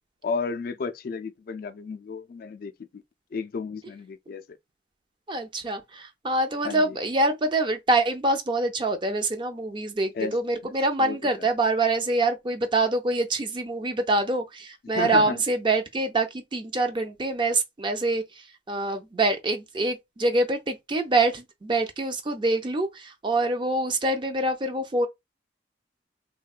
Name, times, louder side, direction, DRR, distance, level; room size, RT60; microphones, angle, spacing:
voice 1, 0.2-2.7 3.3-4.4 6.6-7.0 10.2-10.4 10.6-10.7 11.0-11.5 14.9-15.4, left 5 dB, 55° left, 0.3 m, -32 dB
voice 2, 5.3-18.2 18.7-25.1, right 2 dB, 25° right, 0.5 m, -25 dB
3.5 x 2.2 x 2.3 m
head